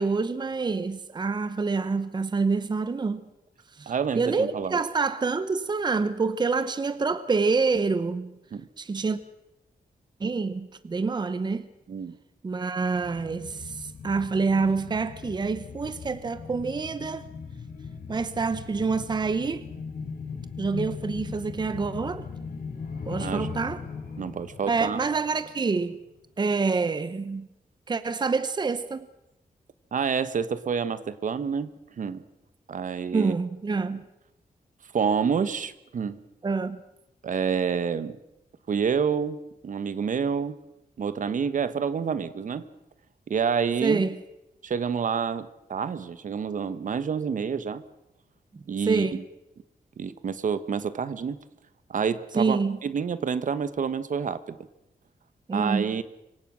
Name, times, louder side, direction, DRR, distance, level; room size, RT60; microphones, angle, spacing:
voice 1, 0.0-3.2 3.8-8.3 8.8-9.2 10.2-11.7 12.4-17.3 18.1-19.6 20.6-22.3 23.1-23.8 24.7-26.0 26.4-27.5 27.9-29.1 33.1-34.1 36.4-36.8 43.8-44.2 48.5-49.2 52.3-52.8 55.5-55.9, right 4 dB, 30° right, 0.9 m, -27 dB
voice 2, 3.9-4.8 8.5-8.7 11.9-12.2 23.2-23.5 24.2-25.0 29.9-31.7 32.0-32.2 32.7-33.3 34.9-36.2 37.2-38.2 38.7-40.6 41.0-42.7 43.3-44.0 44.6-47.8 48.7-49.2 50.0-51.4 51.9-54.6 55.5-56.0, right 6 dB, 60° right, 1.3 m, -28 dB
sound 1, 12.9-26.1 26.4-26.5, left 5 dB, 80° left, 5.2 m, -39 dB
26.0 x 23.5 x 6.3 m
wide cardioid pair, 160°, 15 cm